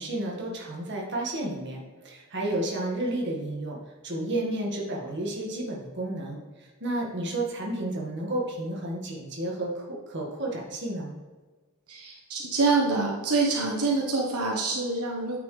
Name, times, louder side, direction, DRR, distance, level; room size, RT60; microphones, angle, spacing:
voice 1, 0.0-3.8 4.0-11.2, right 1 dB, 50° right, -2 dB, 1.8 m, -31 dB
voice 2, 11.9-15.4, right 3 dB, 85° right, -1 dB, 1.2 m, -26 dB
9.4 x 6.0 x 3.3 m, 1.3 s
head